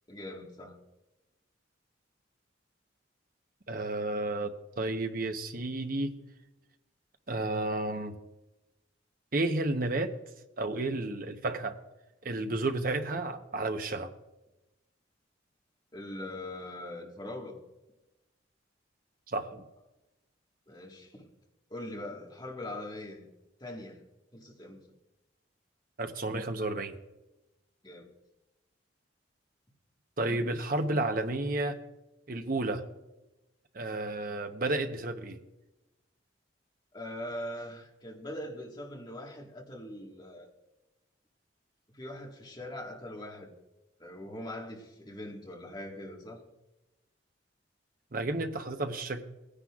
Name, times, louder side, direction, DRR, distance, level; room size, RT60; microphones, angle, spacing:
voice 1, 0.1-0.8 15.9-17.6 20.7-21.2 21.7-23.3 23.6-24.0 24.3-24.8 27.8-28.1 36.9-40.5 41.9-43.5 44.0-46.4, left 1 dB, 20° left, 1.6 m, -42 dB
voice 2, 3.7-6.2 7.3-8.1 9.3-10.1 10.6-11.8 12.2-14.1 19.3-19.6 26.0-26.9 30.2-31.8 32.3-32.8 33.7-35.4 48.1-49.2, right 2 dB, 50° right, 0.9 m, -32 dB
18.5 x 10.0 x 2.4 m
head